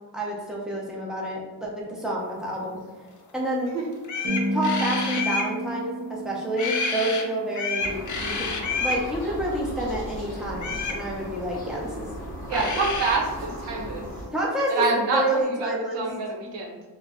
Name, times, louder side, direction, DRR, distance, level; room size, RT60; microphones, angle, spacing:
voice 1, 0.1-2.8 3.3-3.7 4.5-8.5 8.8-12.1 12.5-12.7 14.3-14.7 15.1-16.0, right 1 dB, ahead, -4 dB, 0.6 m, -29 dB
sound 1, 3.7-3.8 4.0-5.5 6.5-7.2 7.5-9.0 10.6-11.0 12.2-12.3 12.5-13.2, left 4 dB, 45° left, 0.5 m, -29 dB
sound 2, 4.2-8.6, right 1 dB, 45° right, 0.9 m, -32 dB
sound 3, 7.8-14.3, equal, 20° left, 1.1 m, -36 dB
voice 2, 12.5-14.0 14.7-16.8, right 3 dB, 80° right, -1 dB, 0.8 m, -27 dB
2.5 x 2.1 x 3.6 m, 1.3 s
cardioid pair, 100°, 41 cm